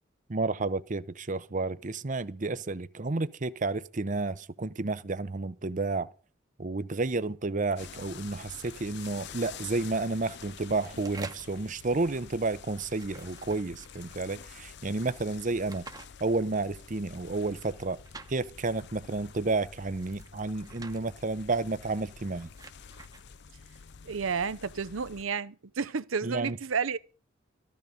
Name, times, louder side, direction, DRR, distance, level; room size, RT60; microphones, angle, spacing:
voice 1, 0.3-6.1 6.6-15.8 16.2-18.0 18.3-22.5 26.2-26.6, right 3 dB, 40° right, 0.7 m, -31 dB
sound 1, 7.8-25.2, left 6 dB, 55° left, 0.6 m, -48 dB
sound 2, 8.6-9.1 10.3-11.6 12.8-14.1 15.3-16.1 17.5-18.3 19.9-21.0 22.2-23.2, right 3 dB, 20° right, 1.1 m, -49 dB
voice 2, 24.0-27.0, right 5 dB, 75° right, 0.7 m, -31 dB
14.0 x 13.5 x 5.2 m
head